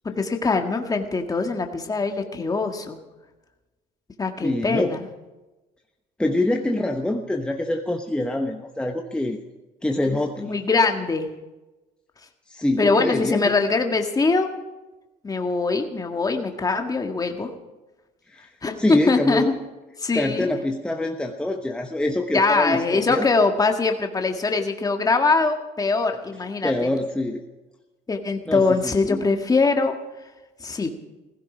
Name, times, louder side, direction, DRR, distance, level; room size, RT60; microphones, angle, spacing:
voice 1, 0.1-3.0 4.2-5.1 10.4-11.3 12.8-14.5 15.2-17.5 18.6-19.5 20.0-20.5 22.3-26.9 28.1-30.0 30.6-30.9, left 3 dB, 20° left, 4 dB, 1.7 m, -22 dB
voice 2, 4.4-4.9 6.2-9.4 9.8-10.6 12.5-13.5 18.3-18.5 18.8-19.5 20.1-23.3 26.6-27.4 28.5-29.2, left 1 dB, 5° left, 3 dB, 1.1 m, -25 dB
16.5 x 16.0 x 5.0 m, 1.1 s
cardioid pair, 110°, 17 cm